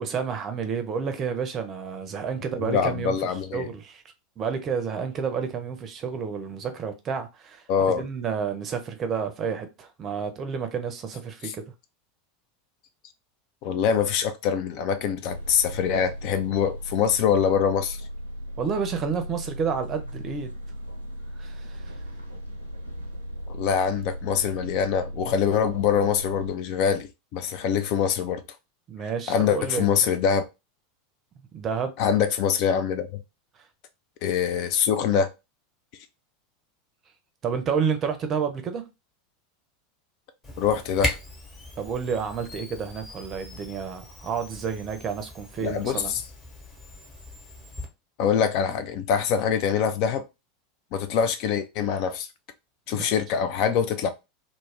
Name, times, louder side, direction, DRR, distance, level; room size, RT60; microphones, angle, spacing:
voice 1, 0.0-3.2 3.5-4.0 4.4-7.6 8.0-11.6 18.6-20.5 21.4-21.8 28.9-29.9 31.5-31.9 37.4-38.8 41.8-46.1 52.9-53.1, right 6 dB, 30° right, 0.5 m, -30 dB
voice 2, 2.6-3.7 7.7-8.1 11.4-11.5 13.6-18.0 23.5-28.4 29.3-30.4 32.0-33.2 34.2-35.3 40.6-41.2 45.6-46.2 48.2-50.2 50.9-52.3 52.9-54.1, left 7 dB, 50° left, 0.3 m, -24 dB
sound 1, 15.3-26.5, equal, 90° right, 0.5 m, -37 dB
Camera, 40.4-47.9, left 2 dB, 25° left, 1.0 m, -38 dB
2.3 x 2.1 x 3.4 m
figure-of-eight pair, 80°, 0 cm